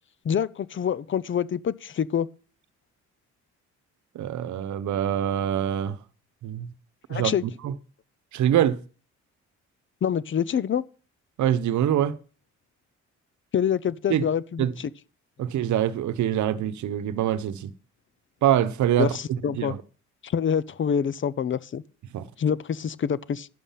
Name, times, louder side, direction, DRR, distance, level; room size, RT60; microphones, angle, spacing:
voice 1, 0.2-2.3 7.1-7.4 10.0-10.8 13.5-14.9 19.0-19.8 20.2-21.8 22.4-23.5, left 8 dB, 40° left, 0.6 m, -26 dB
voice 2, 4.1-6.0 6.4-6.7 7.1-7.3 7.6-7.7 8.3-8.8 11.4-12.2 14.1-14.2 14.6-14.7 15.4-17.7 18.4-19.1 19.6-19.8 22.1-22.3, right 10 dB, 70° right, 1.0 m, -24 dB
11.0 x 7.2 x 5.7 m
cardioid pair, 90°, 30 cm